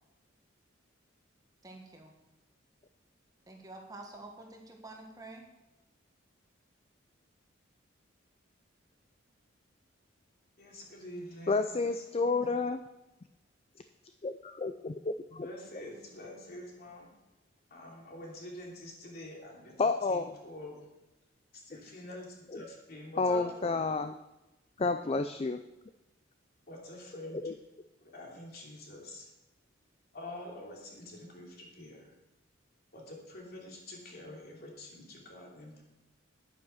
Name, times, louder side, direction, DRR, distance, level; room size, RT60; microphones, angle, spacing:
voice 1, 1.6-2.2 3.5-5.4 12.3-12.7, right 2 dB, 20° right, 1 dB, 1.6 m, -48 dB
voice 2, 10.6-11.7 15.4-17.1 17.7-19.7 20.1-20.8 21.6-23.8 26.7-27.4 28.1-29.2 30.1-32.1 32.9-35.8, left 1 dB, 50° left, -1 dB, 3.0 m, -46 dB
voice 3, 11.5-12.8 14.2-15.5 19.8-20.3 22.5-22.6 23.2-24.1 24.8-25.6 27.3-27.5, left 3 dB, 30° left, 9 dB, 0.4 m, -30 dB
9.8 x 9.6 x 5.7 m, 1.0 s
head